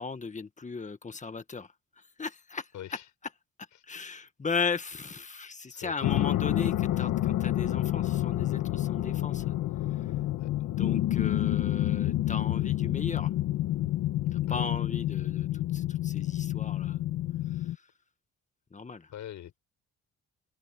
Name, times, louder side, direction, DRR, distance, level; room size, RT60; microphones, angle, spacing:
voice 1, 0.0-3.3 3.8-9.5 9.9-10.1 10.6-13.3 14.3-17.0 17.5-17.9 18.7-19.1, left 5 dB, 25° left, 1.7 m, -37 dB
voice 2, 2.7-3.1 5.7-6.3 10.4-10.5 14.5-14.7 19.1-19.6, left 11 dB, 70° left, 6.1 m, -43 dB
sound 1, 6.0-17.7, left 14 dB, 90° left, 1.6 m, -29 dB
open air
cardioid pair, 90°, 30 cm